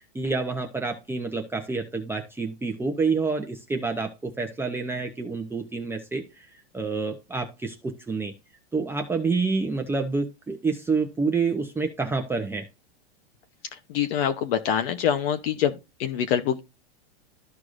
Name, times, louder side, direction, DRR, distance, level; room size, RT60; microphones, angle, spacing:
voice 1, 0.1-6.4 6.7-8.3 8.7-12.6, right 4 dB, 5° right, 0.7 m, -28 dB
voice 2, 13.9-15.7 16.0-16.6, left 9 dB, 60° left, 1.0 m, -24 dB
13.5 x 4.7 x 2.6 m
supercardioid pair, 140°, 33 cm